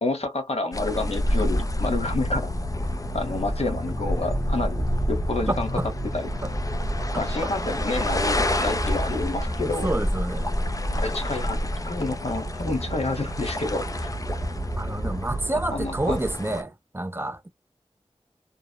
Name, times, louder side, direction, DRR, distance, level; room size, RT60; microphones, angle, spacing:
voice 1, 0.0-2.5 3.1-5.7 6.1-6.3 7.2-9.9 11.0-14.1 15.7-16.2, left 2 dB, 65° left, 0.9 m, -29 dB
sound 1, 0.7-16.6, left 1 dB, 30° left, 0.4 m, -29 dB
sound 2, 1.5-16.4, right 2 dB, 55° right, 0.7 m, -34 dB
voice 2, 5.5-5.9 6.4-6.5 7.1-7.2 9.6-10.5 14.8-17.5, right 1 dB, 20° right, 0.5 m, -29 dB
3.0 x 2.0 x 2.2 m
wide cardioid pair, 65°, 11 cm